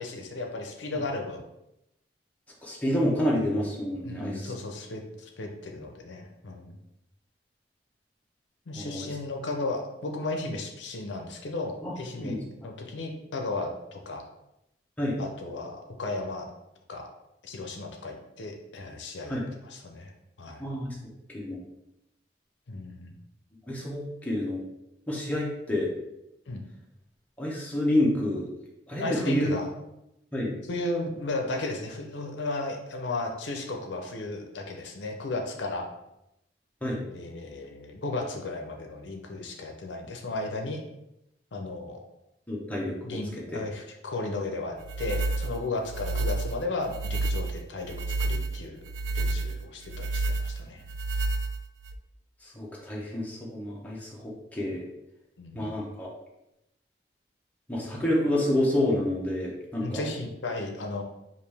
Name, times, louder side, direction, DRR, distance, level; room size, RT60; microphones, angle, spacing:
voice 1, 0.0-1.4 4.0-6.8 8.7-14.2 15.2-16.5 16.9-17.1 17.4-20.1 20.4-20.6 22.7-23.2 26.5-26.6 29.0-29.7 30.7-35.9 37.1-40.8 41.5-42.0 43.0-48.8 49.1-50.8 55.4-55.7 59.8-61.0, left 2 dB, 80° left, 2 dB, 0.6 m, -35 dB
voice 2, 2.6-4.5 8.7-9.1 11.8-12.4 15.0-15.2 19.3-19.5 20.6-20.9 21.3-21.6 23.7-24.6 25.1-25.9 27.4-28.4 28.9-29.5 30.3-30.5 36.8-37.0 42.5-42.9 43.5-43.6 52.5-54.8 55.5-56.1 57.7-60.1, left 1 dB, 10° left, -4 dB, 0.9 m, -28 dB
sound 1, 44.8-52.0, right 2 dB, 80° right, 0.4 m, -30 dB
5.1 x 2.6 x 3.4 m, 0.87 s
head